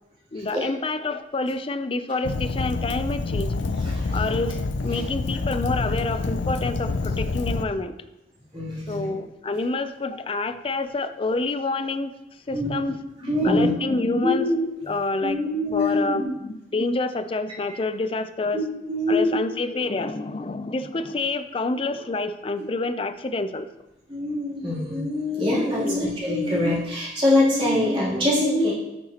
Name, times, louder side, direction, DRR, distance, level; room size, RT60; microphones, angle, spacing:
voice 1, 0.3-3.5 4.1-8.0 8.9-12.1 12.5-14.5 14.8-15.4 15.7-18.6 19.1-23.7 25.8-26.0, left 3 dB, 30° left, 10 dB, 0.4 m, -28 dB
Fire, 2.2-7.7, left 3 dB, 85° left, 0.5 m, -27 dB
voice 2, 3.8-4.2 4.9-5.0 8.5-9.1 12.5-12.7 13.2-13.7 14.2-14.7 15.2-16.4 18.5-18.6 18.9-19.4 24.1-28.7, left 1 dB, 30° right, -8 dB, 3.0 m, -23 dB
8.6 x 7.3 x 2.9 m, 0.96 s
head